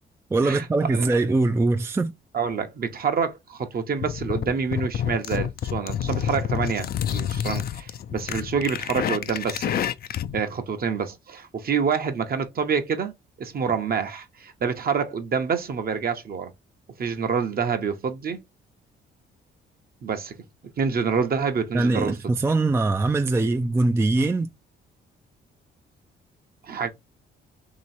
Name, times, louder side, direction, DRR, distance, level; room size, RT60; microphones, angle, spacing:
voice 1, 0.3-2.1 21.7-24.5, right 2 dB, 15° right, 0.3 m, -22 dB
voice 2, 2.3-9.7 10.3-13.1 13.4-16.5 17.0-18.4 20.0-20.3 20.8-22.1 26.6-26.9, right 6 dB, 50° right, 0.9 m, -27 dB
sound 1, 4.0-10.4, left 9 dB, 50° left, 0.4 m, -28 dB
3.0 x 3.0 x 4.3 m
cardioid pair, 90°, 20 cm